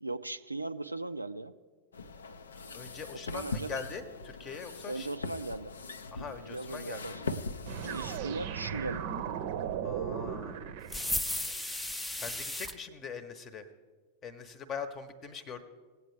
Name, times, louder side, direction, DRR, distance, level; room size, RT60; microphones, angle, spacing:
voice 1, 0.0-1.5 3.1-3.8 4.9-5.7 6.1-7.4 7.8-9.1, right 2 dB, 85° right, 11 dB, 0.4 m, -38 dB
sound 1, 1.9-8.2, left 3 dB, 70° left, 0.5 m, -41 dB
voice 2, 2.7-5.1 6.1-7.2 9.8-10.6 12.1-13.7 14.2-15.6, left 6 dB, 30° left, 12 dB, 0.9 m, -42 dB
sound 2, 7.7-11.6, right 8 dB, 50° right, 0.7 m, -37 dB
sound 3, 10.9-12.7, left 1 dB, 10° left, 0.6 m, -34 dB
18.0 x 8.4 x 3.2 m, 1.4 s
figure-of-eight pair, 90°, 0 cm